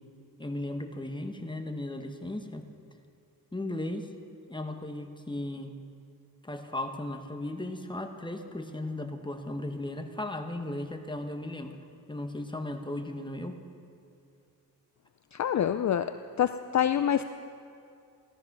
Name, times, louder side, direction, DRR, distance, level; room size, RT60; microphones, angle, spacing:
voice 1, 0.4-2.6 3.5-4.1 4.5-5.8 6.4-11.8 12.1-13.6, left 1 dB, 10° left, 5 dB, 1.2 m, -36 dB
voice 2, 15.3-16.1 16.4-17.3, left 9 dB, 50° left, 10 dB, 0.5 m, -26 dB
17.0 x 13.0 x 6.0 m, 2.5 s
wide cardioid pair, 90°, 37 cm